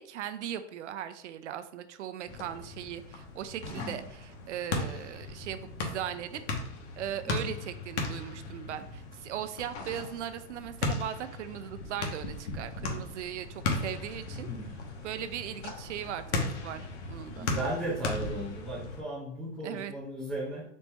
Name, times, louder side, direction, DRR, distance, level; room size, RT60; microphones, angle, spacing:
voice 1, 0.0-6.4 7.0-14.5 15.0-17.5 19.6-19.9, right 10 dB, 75° right, 11 dB, 0.6 m, -38 dB
sound 1, 2.3-19.0, left 3 dB, 70° left, 1.1 m, -37 dB
voice 2, 3.6-4.0 7.3-7.4 14.3-14.7 17.4-20.6, right 1 dB, 5° left, -10 dB, 0.4 m, -36 dB
4.2 x 2.9 x 3.4 m, 0.66 s
hypercardioid pair, 145°, 35 cm